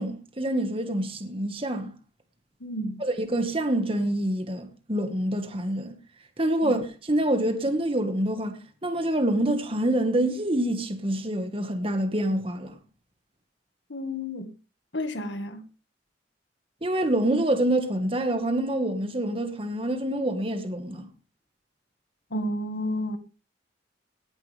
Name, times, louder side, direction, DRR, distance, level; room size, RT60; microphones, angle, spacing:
voice 1, 0.0-1.9 3.0-6.0 6.4-12.8 16.8-21.1, right 1 dB, 30° right, 1.8 m, -26 dB
voice 2, 2.6-3.0 6.6-6.7 13.9-14.5 14.9-15.6 22.3-23.2, left 1 dB, 85° left, 1.9 m, -31 dB
18.5 x 11.0 x 3.5 m
head